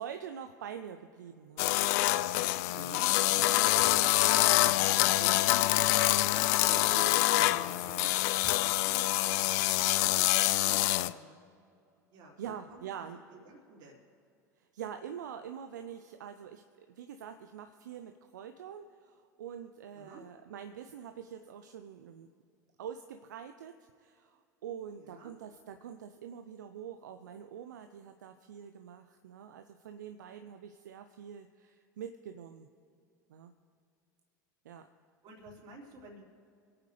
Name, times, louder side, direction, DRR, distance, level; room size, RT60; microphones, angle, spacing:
voice 1, 0.0-1.7 5.0-5.2 12.4-13.2 14.6-22.3 22.8-32.7 33.3-33.5 34.6-34.9, right 8 dB, 80° right, 8 dB, 0.6 m, -45 dB
voice 2, 1.4-1.9 2.7-4.0 4.6-4.9 5.2-11.4 12.1-12.9 13.3-14.0 19.9-20.3 25.0-25.3 35.2-36.2, right 2 dB, 50° right, -2 dB, 3.9 m, -50 dB
sound 1, 1.6-11.1, left 17 dB, 65° left, 0.4 m, -26 dB
26.5 x 8.8 x 3.3 m, 2.4 s
hypercardioid pair, 80°, 10 cm